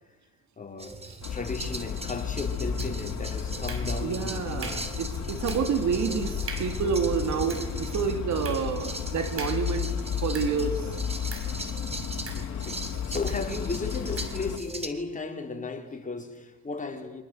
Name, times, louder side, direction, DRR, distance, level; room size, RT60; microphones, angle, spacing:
voice 1, 0.6-1.0 1.3-4.9 12.3-17.2, left 3 dB, 25° left, 4.5 m, -35 dB
sound 1, 0.8-14.9, right 2 dB, 20° right, 3.1 m, -39 dB
sound 2, 1.2-14.6, left 8 dB, 65° left, 3.0 m, -33 dB
sound 3, 2.8-3.2 3.7-4.2 4.6-5.0 5.5-5.8 6.1-6.2 6.5-6.9 7.3-10.8 11.3-11.6 12.3-12.8 13.3-13.5 14.2-14.4, right 4 dB, 50° right, 5.6 m, -43 dB
voice 2, 4.0-9.9 10.2-10.9, right 6 dB, 70° right, 2.9 m, -28 dB
28.5 x 25.5 x 8.1 m
cardioid pair, 90°, 30 cm